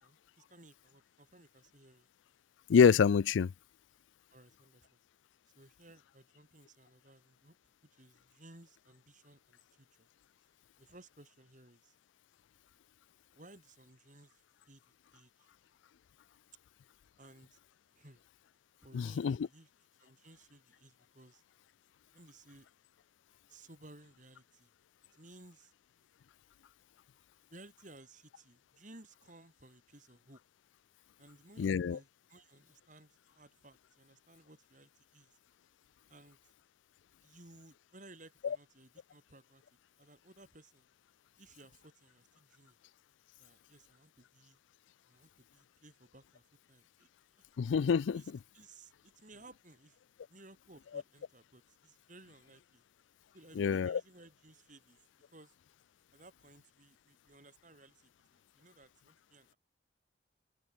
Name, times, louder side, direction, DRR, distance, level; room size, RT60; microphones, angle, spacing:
voice 1, 0.0-2.1 4.3-5.0 5.5-10.1 10.8-12.0 13.3-15.5 17.2-17.6 17.9-18.2 18.8-19.7 20.0-21.4 22.1-22.7 23.5-24.7 25.1-25.7 27.5-30.4 31.2-35.4 36.1-36.5 37.2-39.6 40.0-40.9 41.4-42.8 43.4-44.6 45.1-47.5 48.1-50.0 50.3-52.8 53.3-55.5 56.1-59.6, right 2 dB, 45° right, 4.8 m, -59 dB
voice 2, 2.7-3.5 18.9-19.4 31.6-32.0 47.6-48.2 53.6-54.0, left 6 dB, 90° left, 0.4 m, -26 dB
open air
head